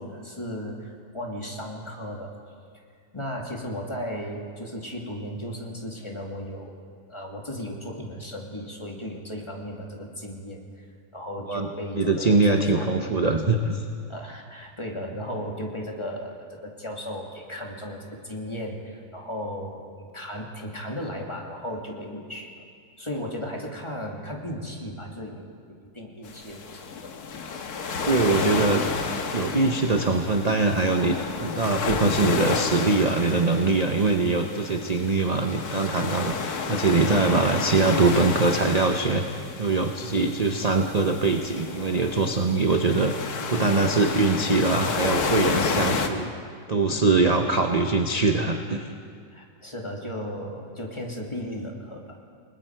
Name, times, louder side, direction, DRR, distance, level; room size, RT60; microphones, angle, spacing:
voice 1, 0.0-2.3 3.1-6.7 7.1-10.8 11.1-12.9 14.1-22.5 23.0-27.1 46.9-47.1 49.3-52.2, equal, 15° left, 0 dB, 2.3 m, -35 dB
voice 2, 12.0-13.8 28.1-28.8 29.3-43.1 43.5-46.3 46.7-48.9, right 3 dB, 35° right, 4 dB, 0.7 m, -23 dB
sound 1, 26.2-46.1, left 5 dB, 60° left, 1.7 m, -31 dB
29.0 x 20.0 x 4.6 m, 2.2 s
omnidirectional pair, 1.9 m